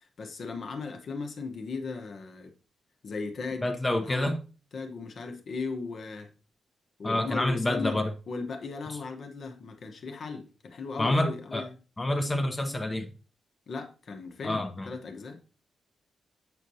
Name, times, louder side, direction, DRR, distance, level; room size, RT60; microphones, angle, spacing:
voice 1, 0.2-2.5 3.0-3.7 3.9-4.3 4.7-6.3 7.0-8.0 8.3-11.7 13.7-15.4, left 4 dB, 55° left, 1.1 m, -37 dB
voice 2, 3.6-4.4 7.0-8.1 8.9-9.0 11.0-11.7 12.0-13.1 14.4-14.9, left 1 dB, 20° left, 0.8 m, -28 dB
7.9 x 6.3 x 2.8 m
wide cardioid pair, 145°, 0 cm